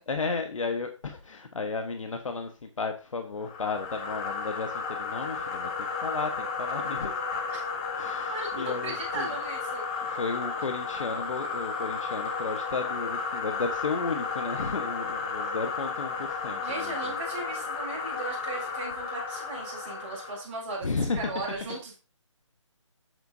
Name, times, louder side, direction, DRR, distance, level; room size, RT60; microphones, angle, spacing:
voice 1, 0.1-7.2 7.9-9.3 10.1-17.1 20.8-21.4, left 4 dB, 80° left, 5 dB, 1.3 m, -33 dB
sound 1, 3.4-20.4, left 4 dB, 15° left, 0.6 m, -33 dB
voice 2, 8.8-9.8 16.6-20.9 21.2-21.9, right 3 dB, 25° right, -4 dB, 4.2 m, -37 dB
9.6 x 8.0 x 2.7 m, 0.32 s
hypercardioid pair, 165°, 17 cm